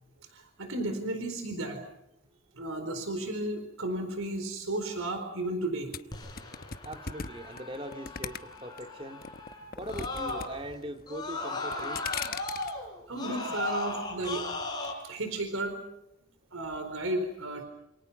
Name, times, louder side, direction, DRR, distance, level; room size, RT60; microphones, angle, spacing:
voice 1, 0.3-1.8 2.6-5.9 13.1-14.4 15.0-15.8 16.5-17.6, right 2 dB, 85° right, 7 dB, 4.3 m, -33 dB
sound 1, 5.9-8.8 9.2-10.5 10.7-11.2 11.6-12.7, left 6 dB, 45° left, 1.0 m, -38 dB
Screaming, 6.1-10.7 11.1-14.9, left 3 dB, 20° left, 6.0 m, -37 dB
voice 2, 6.8-9.2 9.8-12.2, right 1 dB, 25° right, 5 dB, 2.5 m, -41 dB
28.0 x 28.0 x 5.8 m, 0.85 s
head